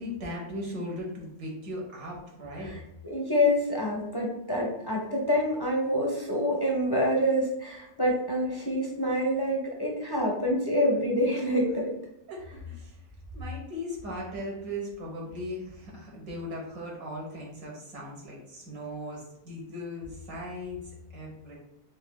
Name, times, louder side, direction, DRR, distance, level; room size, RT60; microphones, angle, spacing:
voice 1, 0.0-2.7 12.3-13.0 13.3-21.6, left 1 dB, 65° right, -2 dB, 1.7 m, -38 dB
voice 2, 3.0-11.9, equal, 25° left, -2 dB, 0.5 m, -27 dB
5.2 x 3.9 x 2.3 m, 0.82 s
omnidirectional pair, 1.6 m